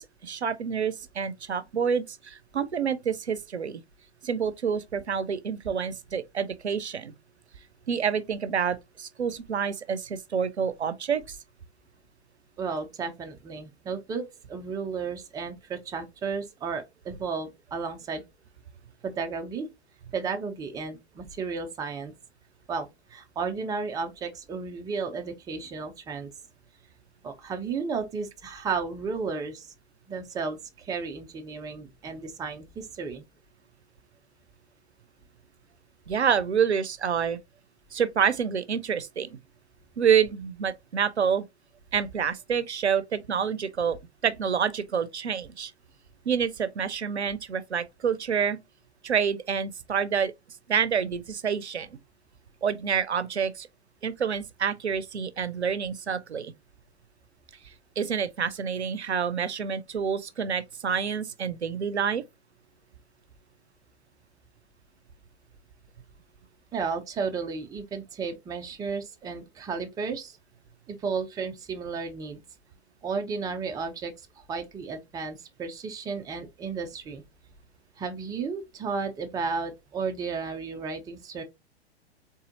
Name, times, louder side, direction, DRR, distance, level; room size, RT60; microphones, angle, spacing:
voice 1, 0.0-3.8 4.2-7.1 7.9-11.4 36.1-37.4 37.9-39.4 40.0-41.4 41.9-44.0 44.2-45.7 46.3-48.6 49.0-50.3 50.7-52.0 52.6-53.7 54.0-56.5 57.6-62.2, right 7 dB, 85° right, 0.6 m, -28 dB
voice 2, 12.6-18.2 19.0-19.7 20.1-22.1 22.7-26.3 27.2-29.7 30.1-33.3 66.7-70.4 70.9-72.4 73.0-74.1 74.5-77.2 78.0-81.4, right 5 dB, 10° right, 0.5 m, -33 dB
4.0 x 3.8 x 2.7 m
figure-of-eight pair, 105°, 33 cm